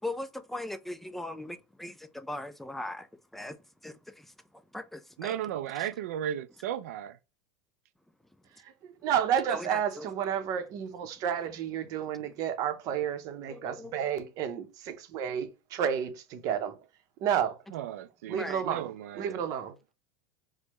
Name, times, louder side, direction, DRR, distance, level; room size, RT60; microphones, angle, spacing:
voice 1, 0.0-3.6 3.8-4.3 4.7-5.3 5.8-5.9 9.5-10.1 13.5-14.1 18.4-18.6, left 1 dB, 5° left, 0.4 m, -39 dB
voice 2, 5.2-7.2 17.7-19.4, right 10 dB, 80° right, 0.3 m, -35 dB
voice 3, 8.8-16.8 17.2-17.6 18.3-19.9, right 8 dB, 50° right, 0.7 m, -31 dB
4.4 x 2.1 x 2.9 m
hypercardioid pair, 105°, 8 cm